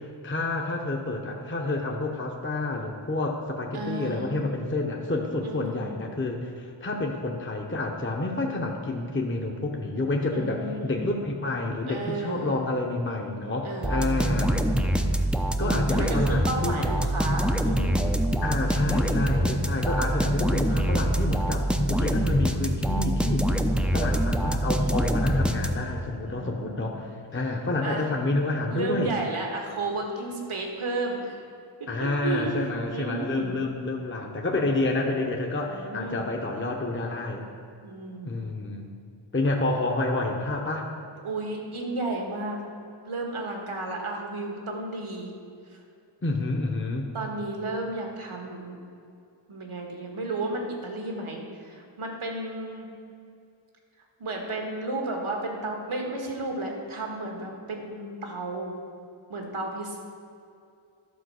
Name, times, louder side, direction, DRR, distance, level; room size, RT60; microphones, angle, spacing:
voice 1, 0.0-14.5 15.6-16.9 18.4-23.5 23.9-29.1 31.9-37.4 38.2-38.9 39.3-40.9 46.2-47.1, left 2 dB, 25° left, 1 dB, 0.8 m, -29 dB
voice 2, 3.7-4.5 5.4-6.0 10.3-11.1 11.9-12.6 13.6-14.6 15.6-18.1 26.2-26.9 27.8-28.1 28.7-31.4 31.8-33.6 35.7-36.3 37.8-38.3 41.2-42.6 43.0-45.3 45.7-45.8 47.1-48.8 49.5-52.9 54.2-58.7 59.3-60.0, right 2 dB, 80° right, 1 dB, 1.6 m, -33 dB
sound 1, 13.8-26.1, equal, ahead, 0.5 m, -25 dB
11.5 x 4.5 x 6.4 m, 2.4 s
wide cardioid pair, 75°, 49 cm